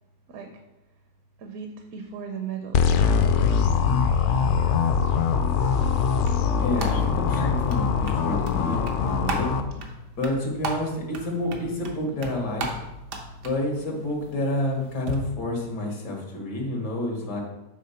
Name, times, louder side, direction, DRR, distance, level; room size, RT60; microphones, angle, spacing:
voice 1, 0.3-0.6 1.4-3.3 9.7-9.8, right 7 dB, 65° right, 5 dB, 1.1 m, -37 dB
sound 1, 2.7-9.6, left 6 dB, 65° left, 0.7 m, -22 dB
sound 2, 5.5-15.2, right 2 dB, 85° right, 1.5 m, -37 dB
voice 2, 6.5-9.5 10.2-12.7 13.4-17.4, left 1 dB, 90° left, 1 dB, 2.2 m, -29 dB
8.5 x 3.5 x 5.7 m, 0.96 s
omnidirectional pair, 1.7 m